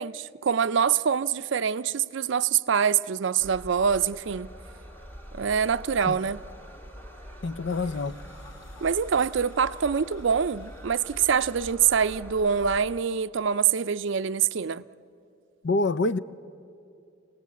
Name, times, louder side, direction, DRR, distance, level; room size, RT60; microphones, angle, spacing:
voice 1, 0.0-4.5 5.3-6.4 8.8-14.8, right 7 dB, 65° right, 0.5 m, -25 dB
sound 1, 3.4-13.0, equal, 10° left, 1.8 m, -44 dB
voice 2, 7.4-8.2 15.6-16.2, left 3 dB, 60° left, 0.5 m, -26 dB
sound 2, 7.7-11.9, left 1 dB, 85° left, 3.4 m, -56 dB
28.5 x 18.0 x 8.4 m
head